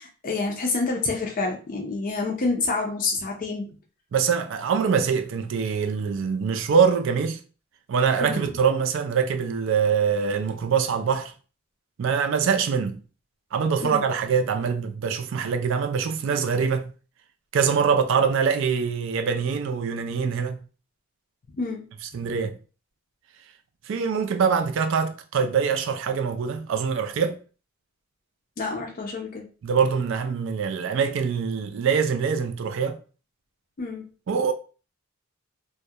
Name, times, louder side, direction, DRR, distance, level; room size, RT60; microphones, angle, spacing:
voice 1, 0.0-3.8 8.2-8.5 13.8-14.0 21.6-21.8 28.6-29.5 33.8-34.1, left 3 dB, 40° left, 0.4 m, -28 dB
voice 2, 4.1-7.4 7.9-11.3 12.0-13.0 13.5-16.9 17.5-20.6 22.1-22.6 23.9-27.4 29.6-33.0 34.3-34.5, right 6 dB, 60° right, 0.3 m, -24 dB
2.2 x 2.0 x 2.7 m
head